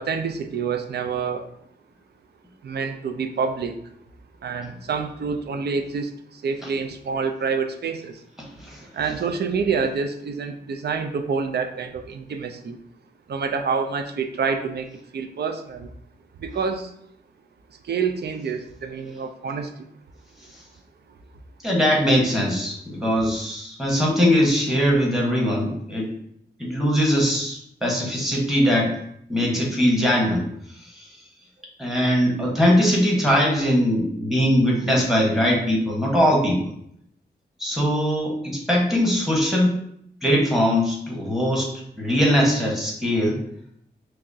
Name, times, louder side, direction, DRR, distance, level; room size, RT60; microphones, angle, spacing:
voice 1, 0.0-1.5 2.6-3.8 4.4-8.2 8.9-12.8 13.3-15.9 16.4-16.9 17.7-19.9, right 5 dB, 70° right, 6 dB, 0.4 m, -27 dB
voice 2, 21.6-26.1 26.6-29.0 29.3-30.5 30.8-31.2 31.8-36.6 37.6-39.7 40.2-43.4, equal, ahead, -2 dB, 1.1 m, -21 dB
5.7 x 2.1 x 2.6 m, 0.71 s
wide cardioid pair, 100°, 18 cm